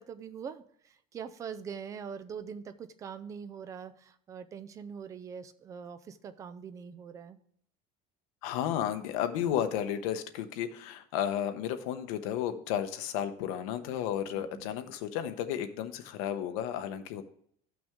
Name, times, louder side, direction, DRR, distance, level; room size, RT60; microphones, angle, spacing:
voice 1, 0.0-7.4 14.3-14.7, right 7 dB, 20° right, 11 dB, 0.4 m, -43 dB
voice 2, 8.4-17.2, left 10 dB, 85° left, 9 dB, 1.0 m, -33 dB
13.5 x 6.1 x 3.6 m, 0.66 s
cardioid pair, 175°, 17 cm